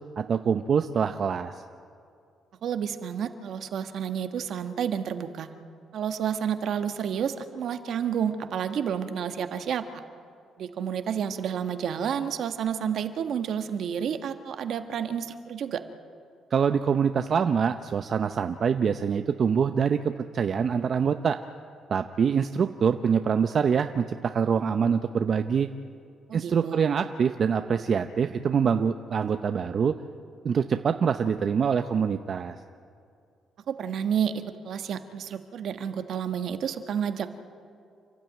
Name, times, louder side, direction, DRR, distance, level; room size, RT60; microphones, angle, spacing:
voice 1, 0.2-1.6 16.5-21.4 21.9-25.7 26.3-30.0 30.4-32.6, right 6 dB, 50° right, 8 dB, 0.7 m, -25 dB
voice 2, 2.6-5.5 5.9-10.0 10.6-15.8 26.3-26.9 33.7-37.3, right 8 dB, 70° right, 8 dB, 1.4 m, -30 dB
29.0 x 12.5 x 9.2 m, 2.4 s
cardioid pair, 90°, 0 cm